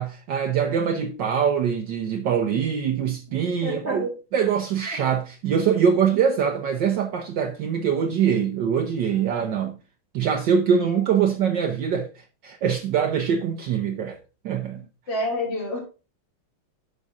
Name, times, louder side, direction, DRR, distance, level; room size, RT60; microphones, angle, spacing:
voice 1, 0.0-9.8 10.1-14.2 14.4-14.8, right 7 dB, 65° right, 1.4 m, -23 dB
voice 2, 3.6-4.1 10.8-11.0 15.1-15.8, left 1 dB, 60° left, 3.6 m, -28 dB
10.5 x 5.5 x 3.6 m
omnidirectional pair, 2.3 m